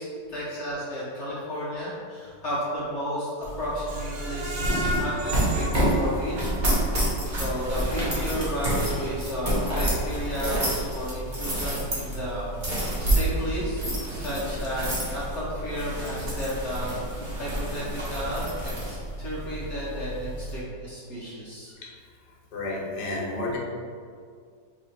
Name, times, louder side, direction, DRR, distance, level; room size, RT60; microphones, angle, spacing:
voice 1, 0.0-6.5 7.3-21.7, equal, 50° left, -8 dB, 1.0 m, -33 dB
sound 1, 3.4-20.6, right 1 dB, 40° right, 0.7 m, -29 dB
Screech, 3.9-6.9 7.3-7.4 7.8-7.9, equal, 85° right, 1.3 m, -34 dB
voice 2, 22.5-23.6, left 2 dB, 70° left, -4 dB, 1.4 m, -31 dB
3.3 x 2.9 x 3.9 m, 2.1 s
omnidirectional pair, 1.9 m